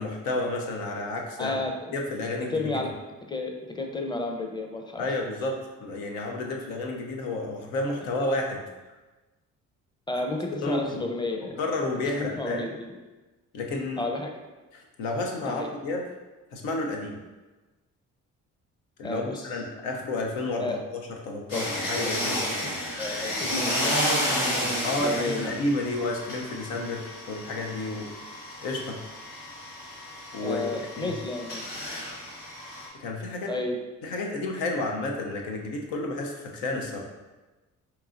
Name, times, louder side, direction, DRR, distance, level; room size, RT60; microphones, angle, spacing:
voice 1, 0.0-1.6 1.9-2.9 5.0-8.6 10.6-11.1 11.6-12.7 13.5-14.0 14.7-16.0 16.5-17.2 19.0-20.8 21.1-22.4 24.8-28.1 28.6-29.0 30.3-31.1 33.0-33.5 34.0-37.0, left 2 dB, 90° left, 1 dB, 0.7 m, -31 dB
voice 2, 1.4-2.0 2.5-5.2 10.1-11.6 11.9-12.9 14.0-14.3 15.4-15.7 19.0-19.5 20.6-20.8 21.5-21.7 22.0-22.1 22.4-22.7 23.0-24.6 25.0-25.6 30.4-31.6 33.5-33.8, left 2 dB, 15° left, 3 dB, 0.6 m, -32 dB
sound 1, 21.5-32.9, equal, 75° left, 1.4 m, -31 dB
4.5 x 2.9 x 2.5 m, 1.2 s
supercardioid pair, 60°, 34 cm